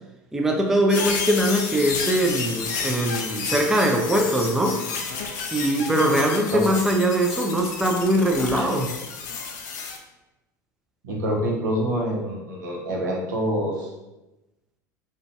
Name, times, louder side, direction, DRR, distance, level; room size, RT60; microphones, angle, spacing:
voice 1, 0.3-4.8 5.5-9.0, right 1 dB, 5° right, 2 dB, 0.3 m, -22 dB
sound 1, 0.9-10.0, left 5 dB, 65° left, 0.4 m, -31 dB
voice 2, 11.0-13.9, equal, 75° right, -1 dB, 0.6 m, -26 dB
2.5 x 2.2 x 2.5 m, 0.99 s
hypercardioid pair, 75°, 10 cm